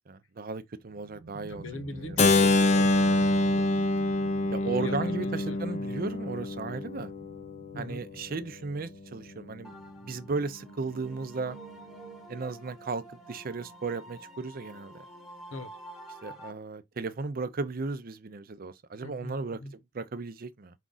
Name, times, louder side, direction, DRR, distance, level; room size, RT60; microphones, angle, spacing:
voice 1, 0.1-2.3 4.5-7.1 7.7-9.7 10.0-11.6 12.3-15.0 16.2-20.7, right 4 dB, 45° right, 0.5 m, -35 dB
sound 1, 0.8-12.2, right 1 dB, 75° right, 0.9 m, -48 dB
voice 2, 1.5-3.7 4.6-5.8 7.7-8.0 15.5-15.7 19.0-19.4 19.6-19.7, left 2 dB, 85° left, 0.8 m, -41 dB
Keyboard (musical), 2.2-8.0, left 2 dB, 35° left, 0.4 m, -26 dB
sound 2, 9.6-16.5, right 1 dB, ahead, 0.8 m, -48 dB
5.1 x 2.4 x 3.8 m
head